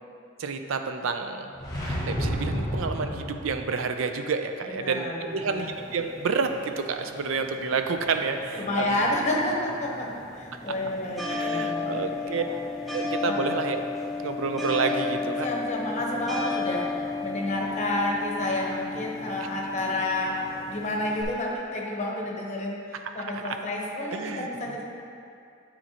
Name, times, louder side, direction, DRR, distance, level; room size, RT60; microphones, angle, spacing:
voice 1, 0.4-1.5 1.9-8.9 10.7-10.8 11.3-12.4 12.9-13.8 14.2-15.5 23.4-23.6 24.1-24.8, right 5 dB, 80° right, 6 dB, 0.4 m, -29 dB
sound 1, 1.5-3.8, equal, 20° left, 1.2 m, -30 dB
voice 2, 4.7-5.7 8.5-10.1 10.3-12.6 15.4-20.3 20.7-24.8, left 1 dB, 35° left, -2 dB, 0.9 m, -30 dB
sound 2, 5.3-21.2, left 3 dB, ahead, 0.7 m, -34 dB
9.6 x 4.3 x 2.9 m, 2.5 s
head